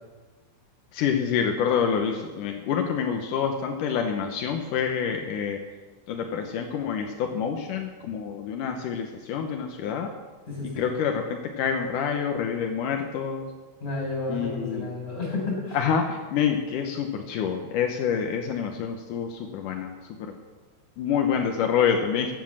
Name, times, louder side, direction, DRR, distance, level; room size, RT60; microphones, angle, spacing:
voice 1, 0.9-5.6 6.1-10.1 10.8-13.5 14.3-14.9 15.7-19.9 20.2-20.3 21.0-22.3, left 7 dB, 80° left, 4 dB, 1.8 m, -27 dB
voice 2, 10.5-10.8 13.8-15.8, left 3 dB, 15° left, -1 dB, 6.1 m, -31 dB
15.0 x 9.9 x 7.3 m, 1.3 s
omnidirectional pair, 5.1 m